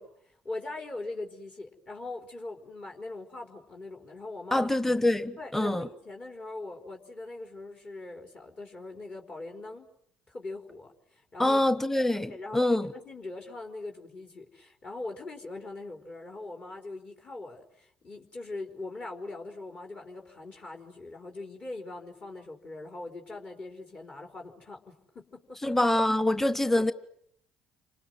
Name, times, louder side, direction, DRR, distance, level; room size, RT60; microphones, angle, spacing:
voice 1, 0.0-4.7 5.4-9.9 10.3-11.6 12.3-25.8 26.7-26.8, left 2 dB, 40° left, 4.5 m, -41 dB
voice 2, 4.5-5.9 11.4-12.9 25.6-26.9, left 1 dB, 10° left, 1.3 m, -25 dB
28.5 x 25.5 x 7.9 m
hypercardioid pair, 55°, 3 cm